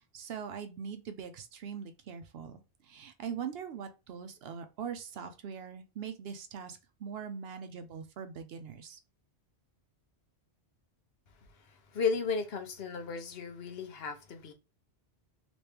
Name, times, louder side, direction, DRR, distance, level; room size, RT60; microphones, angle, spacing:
voice 1, 0.1-2.6 2.8-9.0, right 7 dB, 70° right, 0.8 m, -42 dB
voice 2, 11.9-14.5, left 5 dB, 65° left, 0.9 m, -34 dB
3.1 x 3.0 x 3.3 m
omnidirectional pair, 1.1 m